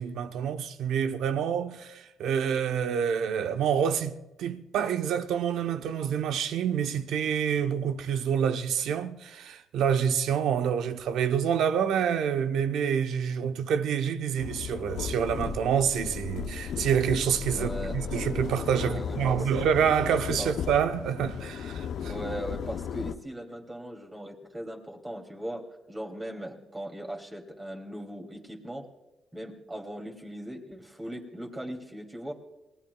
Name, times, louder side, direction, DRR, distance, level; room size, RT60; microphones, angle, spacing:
voice 1, 0.0-22.1, right 8 dB, 80° right, 0.9 m, -27 dB
sound 1, 14.4-23.1, left 7 dB, 70° left, 0.8 m, -35 dB
voice 2, 17.5-18.0 18.8-19.4 20.4-20.5 22.1-28.9 29.3-32.3, right 1 dB, 15° right, 2.9 m, -39 dB
28.0 x 19.5 x 2.3 m
cardioid pair, 90°, 0 cm